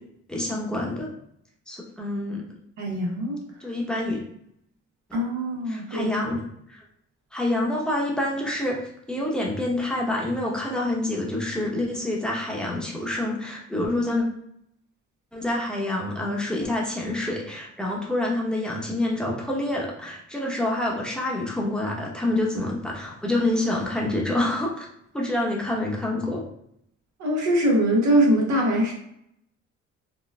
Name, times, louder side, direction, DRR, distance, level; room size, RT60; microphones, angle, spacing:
voice 1, 0.3-1.1 1.7-2.4 3.6-4.2 5.7-6.4 6.7-6.8 7.3-8.8 9.1-14.2 15.3-24.9 25.1-26.4, left 1 dB, 5° left, -3 dB, 0.9 m, -27 dB
voice 2, 2.8-3.4 5.1-6.1 27.2-28.9, right 1 dB, 70° right, -1 dB, 1.1 m, -22 dB
4.1 x 2.2 x 2.3 m, 0.74 s
cardioid pair, 90°, 30 cm